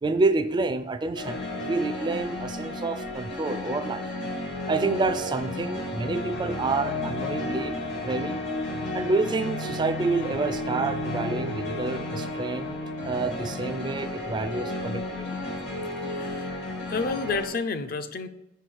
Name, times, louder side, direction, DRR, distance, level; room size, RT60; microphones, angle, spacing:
voice 1, 0.0-4.0 4.7-7.8 8.0-8.4 8.9-12.8 13.0-15.3, right 3 dB, 25° right, 11 dB, 0.3 m, -28 dB
sound 1, 1.2-17.5, left 1 dB, 80° left, 2.2 m, -32 dB
voice 2, 16.1-16.5 16.9-18.3, left 4 dB, 50° left, 10 dB, 0.5 m, -30 dB
5.3 x 4.5 x 6.3 m, 0.88 s
head